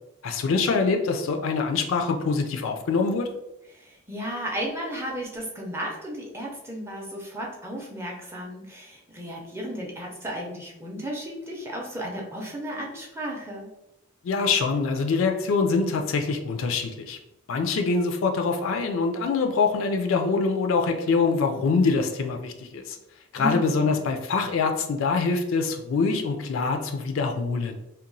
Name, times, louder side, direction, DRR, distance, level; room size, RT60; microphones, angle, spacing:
voice 1, 0.2-3.3 14.2-17.2 17.5-23.0 23.3-27.8, left 4 dB, 65° left, 5 dB, 0.3 m, -24 dB
voice 2, 3.7-13.7 23.4-24.0, equal, 10° right, -2 dB, 0.4 m, -34 dB
2.8 x 2.1 x 2.6 m, 0.90 s
head